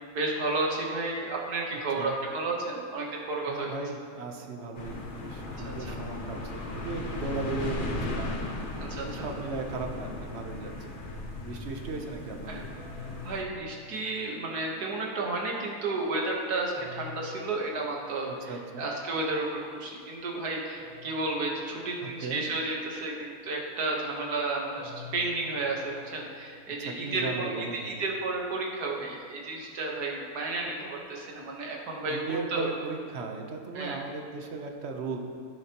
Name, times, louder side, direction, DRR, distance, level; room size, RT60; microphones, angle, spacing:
voice 1, 0.1-3.7 5.6-6.0 8.8-9.3 12.5-12.6 13.1-32.7 33.7-34.0, right 2 dB, 90° right, -1 dB, 1.8 m, -32 dB
voice 2, 3.5-8.3 9.0-11.0 11.4-12.8 18.3-18.9 22.0-22.4 26.8-27.9 32.1-35.2, right 3 dB, 50° right, 3 dB, 1.0 m, -37 dB
sound 1, 4.8-13.4, left 2 dB, 45° left, 0.8 m, -37 dB
sound 2, 12.8-14.8 16.8-18.6 20.8-22.6 24.8-27.0, left 5 dB, 10° right, 1.5 m, -48 dB
15.5 x 6.9 x 2.9 m, 2.2 s
omnidirectional pair, 1.6 m